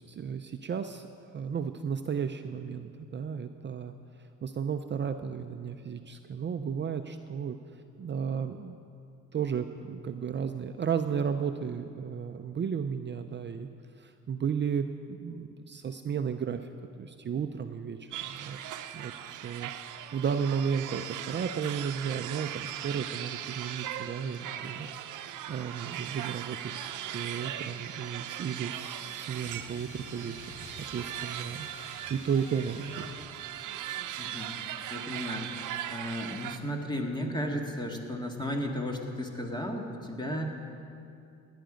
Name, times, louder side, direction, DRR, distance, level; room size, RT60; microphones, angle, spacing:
voice 1, 0.0-3.9 4.2-7.6 8.0-8.8 9.3-13.7 14.0-16.6 17.0-18.6 18.9-24.9 25.1-31.7 32.1-33.1, right 7 dB, 35° right, 8 dB, 0.6 m, -34 dB
sound 1, 18.1-36.6, right 11 dB, 80° right, 0.7 m, -39 dB
sound 2, 29.4-33.4, left 2 dB, 75° left, 3.1 m, -49 dB
voice 2, 34.2-34.5 34.9-35.5 35.9-40.5, equal, 15° left, 1 dB, 1.9 m, -34 dB
17.5 x 10.5 x 5.1 m, 2.6 s
cardioid pair, 90°, 30 cm